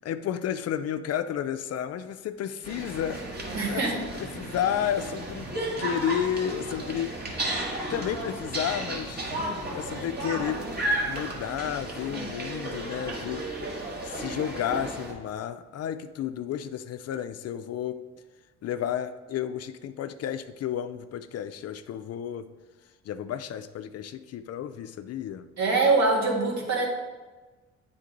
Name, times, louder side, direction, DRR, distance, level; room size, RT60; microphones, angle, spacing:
voice 1, 0.0-3.2 3.7-5.5 5.8-7.1 7.5-9.3 9.7-10.6 11.0-13.4 14.0-18.0 18.6-22.5 23.1-25.5, left 9 dB, 55° left, 11 dB, 0.4 m, -32 dB
sound 1, 2.6-15.1, right 1 dB, 30° right, 1.5 m, -33 dB
voice 2, 3.5-4.0 25.6-26.9, right 3 dB, 60° right, -1 dB, 1.8 m, -23 dB
9.0 x 3.7 x 3.8 m, 1.3 s
cardioid pair, 90°, 30 cm